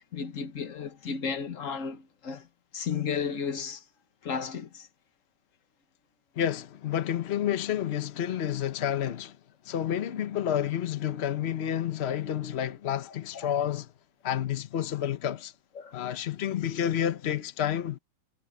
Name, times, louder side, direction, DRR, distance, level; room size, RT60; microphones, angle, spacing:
voice 1, 0.0-2.5 2.7-3.8 4.2-4.9 15.8-15.9, left 6 dB, 45° left, 1.3 m, -33 dB
voice 2, 6.4-9.4 9.6-13.9 14.2-15.5 15.9-18.0, left 10 dB, 70° left, 0.6 m, -30 dB
omnidirectional pair, 2.3 m